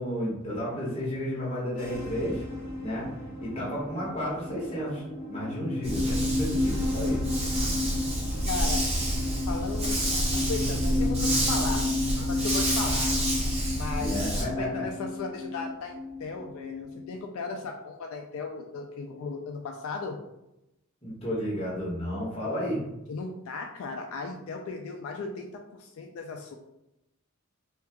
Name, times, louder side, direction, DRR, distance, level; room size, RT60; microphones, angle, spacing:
voice 1, 0.0-2.4 2.8-3.1 3.4-7.2 14.0-14.8 21.0-22.8, equal, 30° left, -6 dB, 1.1 m, -32 dB
sound 1, 1.7-17.2, left 2 dB, 50° left, 1.1 m, -33 dB
Dog, 5.8-14.4, right 1 dB, 30° right, 0.6 m, -28 dB
voice 2, 8.4-8.8 9.5-11.8 12.3-13.2 13.7-20.2 23.1-26.6, left 4 dB, 75° left, 2 dB, 0.3 m, -36 dB
2.7 x 2.3 x 3.4 m, 0.90 s
head